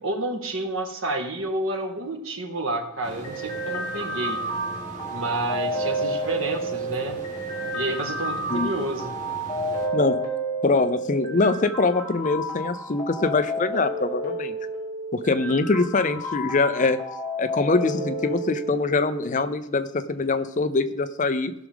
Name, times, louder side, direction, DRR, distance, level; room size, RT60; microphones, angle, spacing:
voice 1, 0.0-4.4 5.1-7.2 7.7-9.2, right 1 dB, 85° right, 3 dB, 1.7 m, -30 dB
sound 1, 3.0-9.9, right 1 dB, 40° right, 1.9 m, -41 dB
sound 2, 3.2-19.2, right 1 dB, 20° left, 2.5 m, -30 dB
voice 2, 10.6-14.5 15.1-17.0 17.4-21.5, left 3 dB, 40° left, 10 dB, 0.6 m, -23 dB
17.0 x 6.1 x 3.6 m, 0.89 s
head